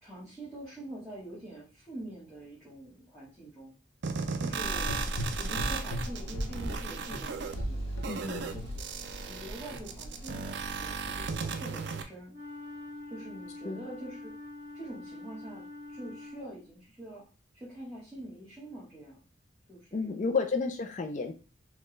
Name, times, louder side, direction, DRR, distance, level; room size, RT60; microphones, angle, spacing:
voice 1, 0.0-3.7 4.4-5.0 5.4-7.8 8.5-8.6 9.3-12.3 13.1-14.3 14.7-17.2 17.5-19.2 19.7-20.4, right 1 dB, 5° right, -9 dB, 1.1 m, -45 dB
sound 1, 4.0-12.0, right 5 dB, 55° right, 0.4 m, -36 dB
Gurgling / Engine, 4.6-11.3, equal, 80° left, 0.9 m, -38 dB
voice 2, 8.1-8.6 13.6-13.8 19.9-21.3, left 4 dB, 35° left, 6 dB, 0.4 m, -31 dB
Wind instrument woodwind instrument, 12.3-16.8, left 2 dB, 20° right, 1.2 m, -45 dB
4.3 x 2.3 x 3.1 m, 0.35 s
head